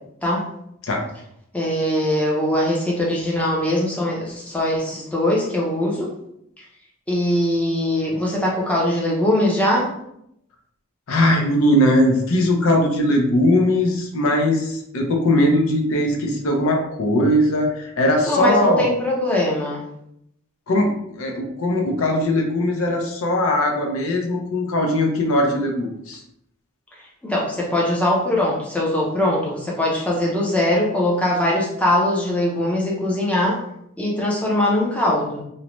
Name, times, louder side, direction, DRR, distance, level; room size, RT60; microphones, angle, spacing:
voice 1, 1.5-6.1 6.6-6.7 7.1-9.9 18.3-19.8 27.2-33.6 34.0-35.4, left 1 dB, 5° left, -4 dB, 0.5 m, -21 dB
voice 2, 11.1-18.9 20.7-26.2, left 1 dB, 80° left, 2 dB, 0.5 m, -20 dB
2.6 x 2.1 x 2.9 m, 0.76 s
head